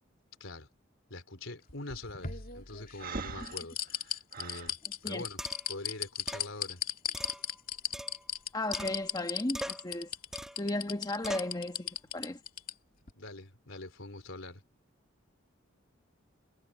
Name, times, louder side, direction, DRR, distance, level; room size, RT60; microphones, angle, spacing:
voice 1, 1.1-4.8 5.0-5.4 5.7-6.8 13.1-14.6, left 2 dB, 75° left, 4.3 m, -44 dB
sound 1, 1.7-3.0 3.4-12.7 13.1-13.2, left 9 dB, 45° left, 2.6 m, -36 dB
Breathing, 3.0-4.7, right 4 dB, 45° right, 1.6 m, -41 dB
sound 2, 4.7-4.8 5.4-5.8 6.3-6.5 7.1-8.4 8.7-9.3 9.5-9.9 10.3-10.7 11.2-11.6, equal, 5° right, 2.0 m, -42 dB
voice 2, 8.5-10.1 10.6-12.4, left 1 dB, 20° left, 1.3 m, -35 dB
head